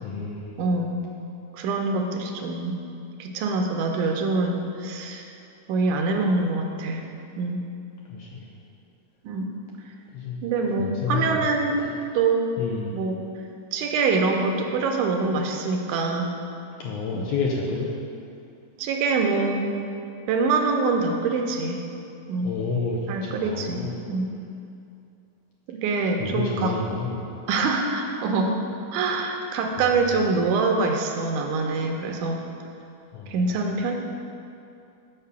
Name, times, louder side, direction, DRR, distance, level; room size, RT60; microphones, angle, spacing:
voice 1, 0.0-0.7 8.1-8.4 10.1-10.4 10.8-11.4 11.8-11.9 12.6-12.9 16.8-17.9 22.4-24.0 26.2-27.4 29.8-29.9 33.1-33.5, left 4 dB, 75° left, -2 dB, 1.6 m, -30 dB
voice 2, 0.6-1.0 1.5-2.8 3.2-5.3 5.7-7.0 7.4-7.6 9.2-9.5 10.4-11.8 12.1-12.5 12.9-13.2 13.7-16.3 17.1-17.3 18.8-19.7 20.3-21.8 22.3-22.5 23.1-23.8 24.1-24.3 25.7-26.7 27.5-28.6 28.9-32.4 33.3-33.9, right 3 dB, 80° right, 3 dB, 2.1 m, -24 dB
6.6 x 5.3 x 7.0 m, 2.6 s
omnidirectional pair, 3.7 m